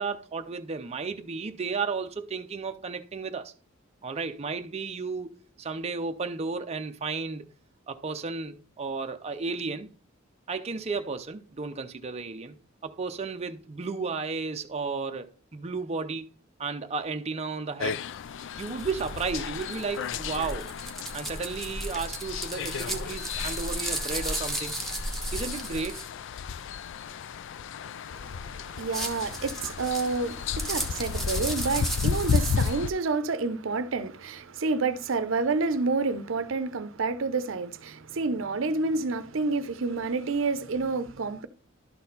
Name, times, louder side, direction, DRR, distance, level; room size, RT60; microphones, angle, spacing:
voice 1, 0.0-3.5 4.0-7.5 7.9-9.9 10.5-12.6 12.8-16.3 16.6-18.1 18.6-20.7 21.1-24.8 25.3-26.1, right 4 dB, 30° right, 0.5 m, -33 dB
sound 1, 17.8-32.9, left 6 dB, 65° left, 0.4 m, -33 dB
sound 2, 18.6-26.1 28.7-32.7, right 1 dB, ahead, 1.1 m, -35 dB
voice 2, 28.1-41.5, right 3 dB, 70° right, 0.6 m, -29 dB
12.0 x 4.3 x 4.0 m
head